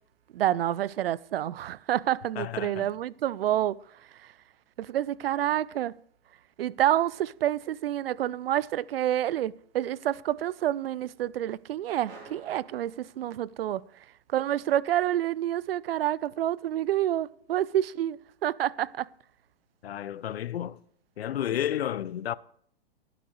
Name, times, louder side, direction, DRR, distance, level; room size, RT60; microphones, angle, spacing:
voice 1, 0.3-3.8 4.8-6.0 6.6-13.8 14.3-19.1, right 12 dB, 65° right, 0.5 m, -28 dB
voice 2, 2.4-2.9 19.8-20.9 21.2-22.3, left 11 dB, 75° left, 0.6 m, -32 dB
sound 1, 12.0-13.8, right 3 dB, 35° right, 3.7 m, -51 dB
22.0 x 7.9 x 3.2 m
hypercardioid pair, 120°, 31 cm